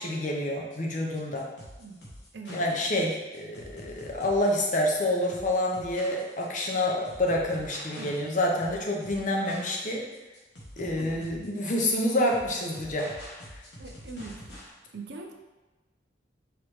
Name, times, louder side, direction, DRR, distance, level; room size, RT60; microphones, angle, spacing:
voice 1, 0.0-1.5 2.5-10.0 10.8-13.1, left 1 dB, 45° left, -1 dB, 0.7 m, -28 dB
sound 1, 0.7-14.7, equal, 80° left, 1.2 m, -46 dB
voice 2, 10.9-11.4 13.8-14.5 14.9-15.3, right 3 dB, 70° right, 3 dB, 0.6 m, -41 dB
4.9 x 3.1 x 3.1 m, 1.2 s
head